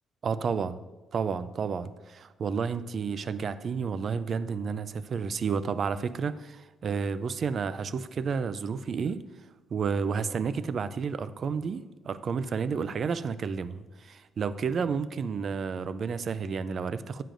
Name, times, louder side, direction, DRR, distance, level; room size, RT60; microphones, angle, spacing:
voice 1, 0.2-0.8 1.1-9.2 9.7-17.2, right 5 dB, 50° right, 0.4 m, -31 dB
10.0 x 7.5 x 2.6 m
cardioid pair, 90°, 0 cm